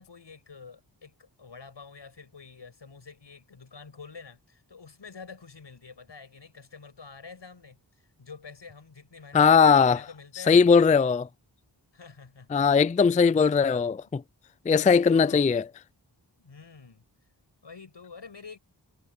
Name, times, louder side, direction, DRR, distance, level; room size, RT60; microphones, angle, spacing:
voice 1, 0.0-7.8 8.2-10.8 11.9-12.5 14.7-15.6 16.4-17.0 17.6-18.6, left 5 dB, 80° left, 6.3 m, -47 dB
voice 2, 9.3-10.0 10.5-11.3 12.5-14.2 14.7-15.6, left 5 dB, 20° left, 0.3 m, -19 dB
wide cardioid pair, 70°, 42 cm